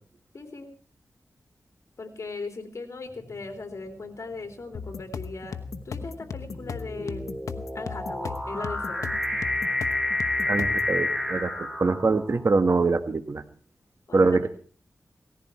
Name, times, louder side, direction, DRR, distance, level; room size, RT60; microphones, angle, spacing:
voice 1, 0.3-0.7 2.0-5.6 5.8-7.4 7.7-9.1 14.1-14.5, left 3 dB, 60° left, 5 dB, 3.3 m, -38 dB
sound 1, 3.2-3.6 4.4-12.6, left 2 dB, 5° right, 2.8 m, -30 dB
sound 2, 4.7-10.9, left 5 dB, 85° left, 1.0 m, -36 dB
voice 2, 10.5-11.5 11.8-13.4 14.1-14.5, right 3 dB, 55° right, 8 dB, 1.8 m, -23 dB
18.5 x 14.5 x 4.5 m, 0.41 s
cardioid pair, 55°, 6 cm